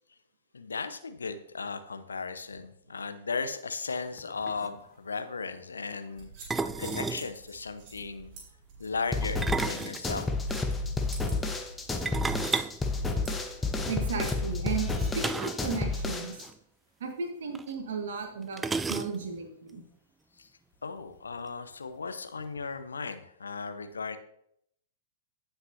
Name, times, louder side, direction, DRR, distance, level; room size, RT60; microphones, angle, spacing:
voice 1, 0.5-6.3 6.6-8.3 8.8-10.3 20.4-20.5 20.8-24.2, left 4 dB, 70° left, 9 dB, 0.9 m, -36 dB
sound 1, 4.2-4.3 4.5-4.7 6.5-7.3 9.2-10.6 12.1-13.7 15.2-15.7 16.0-16.1 16.4-16.5 17.5-17.6 18.6-19.4, right 4 dB, 10° right, 0.3 m, -33 dB
sound 2, 6.1-14.9, right 4 dB, 35° right, 4.3 m, -49 dB
sound 3, 9.1-16.5, left 3 dB, 10° left, 1.0 m, -31 dB
voice 2, 13.9-16.5 17.0-18.6 18.9-19.8, right 5 dB, 60° right, 3 dB, 1.9 m, -35 dB
16.5 x 5.8 x 2.8 m, 0.71 s
figure-of-eight pair, 105°, 0 cm